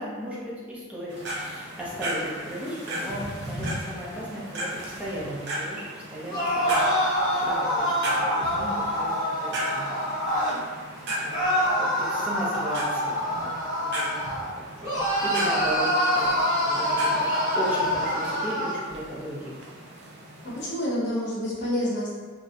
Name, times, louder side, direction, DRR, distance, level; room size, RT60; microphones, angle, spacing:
voice 1, 0.0-10.2 11.1-14.2 14.5-19.6, equal, 5° right, -7 dB, 0.5 m, -36 dB
sound 1, 1.1-20.7, right 1 dB, 55° right, 0.5 m, -36 dB
sound 2, 6.2-10.6 11.3-14.5 14.8-18.8, equal, 20° right, 1.1 m, -25 dB
voice 2, 20.4-22.2, left 1 dB, 55° left, -6 dB, 0.7 m, -28 dB
2.4 x 2.0 x 2.5 m, 1.5 s
head